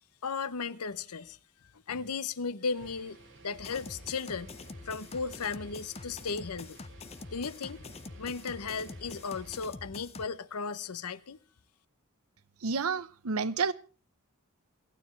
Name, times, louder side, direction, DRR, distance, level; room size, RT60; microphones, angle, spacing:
voice 1, 0.2-1.4 1.9-3.2 3.4-4.5 4.8-6.8 7.3-7.8 8.2-11.4, left 5 dB, 85° left, 0.8 m, -35 dB
sound 1, 2.7-9.8, right 3 dB, 55° right, 5.3 m, -55 dB
sound 2, 3.5-10.3, left 3 dB, 25° left, 0.6 m, -46 dB
voice 2, 12.6-13.7, right 5 dB, 75° right, 0.8 m, -30 dB
28.0 x 9.7 x 3.2 m
head